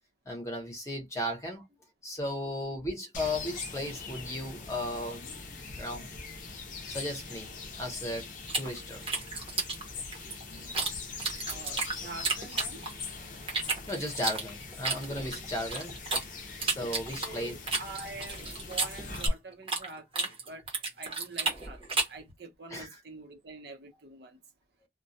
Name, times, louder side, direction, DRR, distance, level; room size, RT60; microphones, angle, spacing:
voice 1, 0.3-1.6 2.0-5.2 5.7-6.1 6.9-8.3 8.5-9.0 11.5-11.6 13.8-16.0 16.6-17.6 22.7-22.9, left 1 dB, 15° left, 0.8 m, -35 dB
sound 1, 3.1-19.3, left 4 dB, 45° left, 0.6 m, -42 dB
sound 2, 8.5-10.9 11.2-13.1 13.5-16.2 16.6-19.9 20.1-22.2, right 3 dB, 30° right, 0.8 m, -32 dB
voice 2, 11.4-12.8 17.2-20.7 21.0-24.4, right 3 dB, 70° right, 0.8 m, -46 dB
2.2 x 2.2 x 2.6 m
head